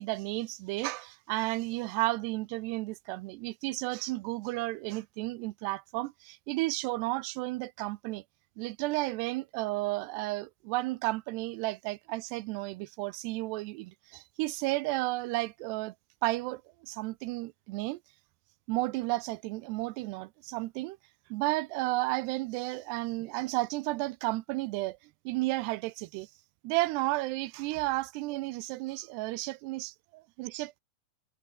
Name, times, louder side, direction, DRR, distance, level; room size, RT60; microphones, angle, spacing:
voice 1, 0.0-8.2 8.6-15.9 16.2-18.0 18.7-21.0 21.3-25.0 25.3-26.3 26.6-30.8, right 20 dB, 85° right, 2.7 m, -33 dB
omnidirectional pair, 4.9 m